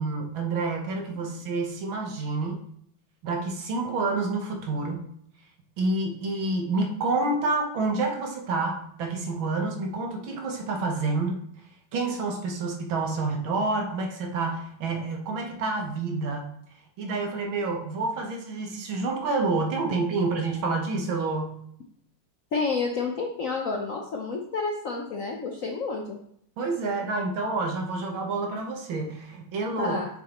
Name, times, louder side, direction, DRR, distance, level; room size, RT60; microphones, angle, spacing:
voice 1, 0.0-2.6 3.2-5.0 5.8-11.4 11.9-16.5 17.0-21.6 26.6-30.0, right 3 dB, 70° right, 2 dB, 1.9 m, -28 dB
voice 2, 22.5-26.2 29.8-30.1, left 4 dB, 60° left, 1 dB, 0.8 m, -29 dB
8.0 x 6.5 x 3.0 m, 0.69 s
omnidirectional pair, 2.3 m